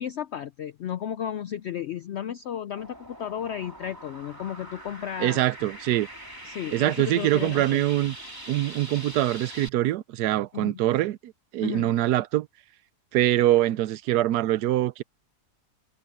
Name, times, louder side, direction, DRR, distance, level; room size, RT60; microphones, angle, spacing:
voice 1, 0.0-5.4 6.4-7.8 10.5-10.8 11.6-11.9, left 9 dB, 75° left, 0.6 m, -33 dB
sound 1, 2.8-9.7, right 1 dB, 15° right, 3.5 m, -43 dB
voice 2, 5.2-6.1 6.7-8.2 8.5-12.5 13.1-15.0, right 14 dB, 90° right, 1.2 m, -24 dB
omnidirectional pair, 1.7 m